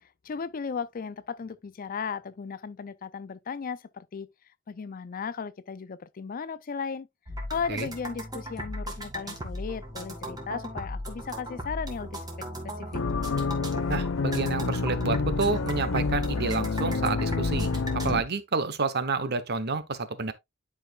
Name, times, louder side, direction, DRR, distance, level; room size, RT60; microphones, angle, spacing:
voice 1, 0.2-4.3 4.7-7.1 7.5-13.0, left 6 dB, 45° left, 0.4 m, -36 dB
sound 1, 7.3-18.1, equal, 20° right, 2.0 m, -37 dB
sound 2, 12.9-18.2, left 4 dB, 85° left, 0.7 m, -28 dB
voice 2, 13.9-20.3, right 4 dB, 55° right, 1.0 m, -29 dB
11.0 x 4.8 x 2.4 m
head